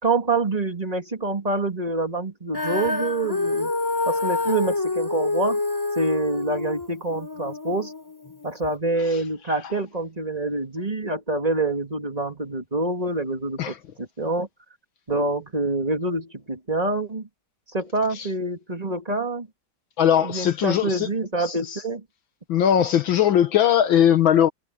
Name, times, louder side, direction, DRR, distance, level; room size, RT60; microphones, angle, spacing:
voice 1, 0.0-3.7 4.1-5.6 6.0-7.9 8.4-14.5 15.1-17.3 17.7-19.5 20.2-22.0, right 2 dB, 20° right, 2.7 m, -26 dB
Female singing, 2.5-8.8, left 3 dB, 10° left, 3.1 m, -27 dB
voice 2, 20.0-21.1 21.4-21.8 22.5-24.5, left 10 dB, 75° left, 1.8 m, -20 dB
omnidirectional pair, 2.2 m